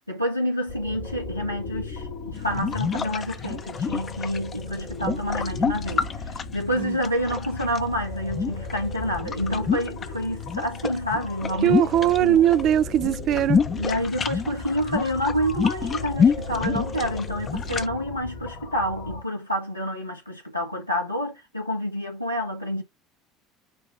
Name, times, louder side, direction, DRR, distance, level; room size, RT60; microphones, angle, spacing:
voice 1, 0.1-11.8 12.2-12.4 13.7-22.8, equal, 90° left, 1.9 m, -28 dB
sound 1, 0.7-19.2, left 3 dB, 65° left, 2.8 m, -36 dB
sound 2, 2.4-7.8 8.3-10.1 10.4-12.6 12.9-17.9, left 6 dB, 30° left, 0.7 m, -27 dB
voice 2, 11.6-13.6, right 12 dB, 45° right, 0.3 m, -20 dB
6.5 x 2.8 x 5.6 m
figure-of-eight pair, 65°, 0 cm